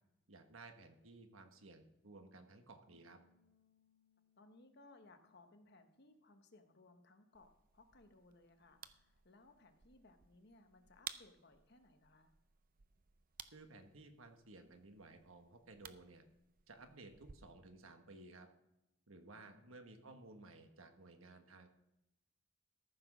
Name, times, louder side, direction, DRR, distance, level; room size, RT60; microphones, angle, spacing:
voice 1, 0.3-3.2 13.5-16.2 16.7-18.5 19.1-21.7, right 2 dB, 80° right, 6 dB, 1.3 m, -57 dB
sound 1, 2.9-7.4 7.7-9.1, left 6 dB, 80° left, 3.7 m, -80 dB
voice 2, 4.4-12.3 19.3-19.7, left 2 dB, 55° left, 7 dB, 1.2 m, -64 dB
sound 2, 7.3-17.4, right 9 dB, 45° right, 0.5 m, -57 dB
14.0 x 6.1 x 6.1 m, 0.91 s
head